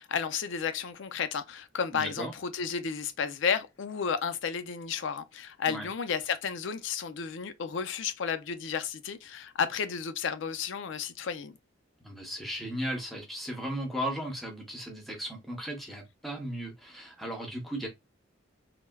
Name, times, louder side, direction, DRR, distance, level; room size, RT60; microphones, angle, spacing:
voice 1, 0.0-11.6, left 6 dB, 65° left, 0.4 m, -32 dB
voice 2, 1.9-2.3 5.7-5.9 12.0-17.9, right 1 dB, ahead, 0.7 m, -36 dB
3.3 x 2.1 x 2.2 m
head